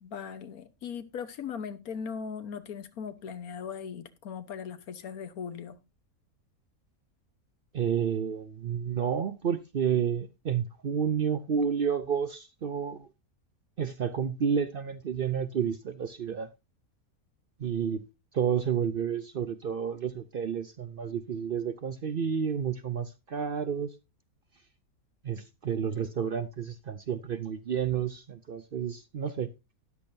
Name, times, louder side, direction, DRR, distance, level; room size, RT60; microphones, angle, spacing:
voice 1, 0.0-5.8, left 7 dB, 80° left, 1.5 m, -39 dB
voice 2, 7.7-13.1 13.8-16.5 17.6-18.1 18.3-23.9 25.2-29.5, right 7 dB, 55° right, 0.6 m, -30 dB
13.0 x 10.5 x 2.6 m
omnidirectional pair, 1.5 m